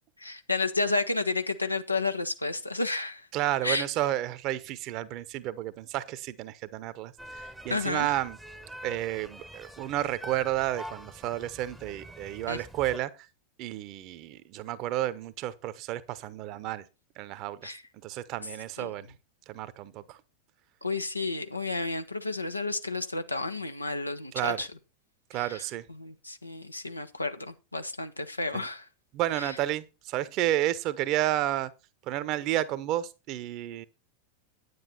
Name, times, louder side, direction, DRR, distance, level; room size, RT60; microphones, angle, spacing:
voice 1, 0.2-3.3 3.6-3.9 7.7-8.1 12.5-12.6 17.6-17.8 18.8-18.9 20.8-24.7 25.3-28.9 29.4-29.6, left 3 dB, 85° left, 1.0 m, -31 dB
voice 2, 3.3-8.4 8.8-13.1 13.6-16.8 17.2-17.7 18.0-19.1 19.5-20.2 24.3-24.7 25.3-25.8 28.5-28.7 29.1-31.7 32.1-33.9, right 14 dB, 40° right, 1.0 m, -31 dB
sound 1, 7.2-13.0, equal, 5° right, 0.9 m, -45 dB
9.7 x 9.4 x 4.2 m
figure-of-eight pair, 90°, 0 cm